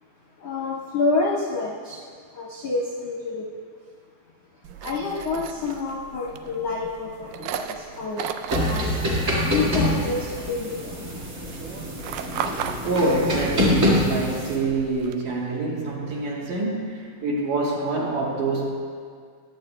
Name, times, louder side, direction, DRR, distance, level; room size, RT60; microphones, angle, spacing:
voice 1, 0.4-2.0 2.3-3.4 4.8-8.9 9.4-10.8, left 3 dB, 70° left, -5 dB, 1.5 m, -28 dB
sound 1, 4.6-15.2, right 7 dB, 85° right, 1.9 m, -37 dB
sound 2, 8.5-14.6, left 1 dB, 35° right, 1.4 m, -25 dB
voice 2, 12.8-18.7, right 2 dB, 65° right, -4 dB, 2.4 m, -26 dB
20.5 x 8.8 x 2.2 m, 2.1 s
omnidirectional pair, 4.3 m